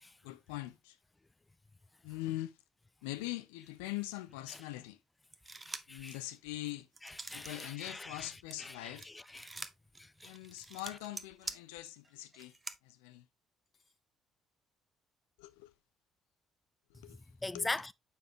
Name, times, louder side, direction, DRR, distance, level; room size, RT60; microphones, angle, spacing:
voice 1, 0.2-1.0 2.0-2.6 3.0-5.0 5.9-6.9 7.3-9.1 10.2-12.5 12.8-13.2 15.4-15.7 16.9-17.2 17.5-17.7, left 16 dB, 70° left, 0.5 m, -42 dB
sound 1, 3.8-4.2 7.0-7.5 10.7-11.1 12.4-12.7 13.7-14.0, left 4 dB, 35° left, 2.0 m, -70 dB
sound 2, 5.3-6.0 6.5-7.7 8.0-12.8, right 3 dB, 25° right, 0.8 m, -46 dB
voice 2, 5.7-6.2 7.0-8.3 8.6-9.5 10.0-10.4 17.4-17.9, left 2 dB, 20° left, 0.4 m, -41 dB
7.1 x 5.4 x 2.8 m
figure-of-eight pair, 45°, 0 cm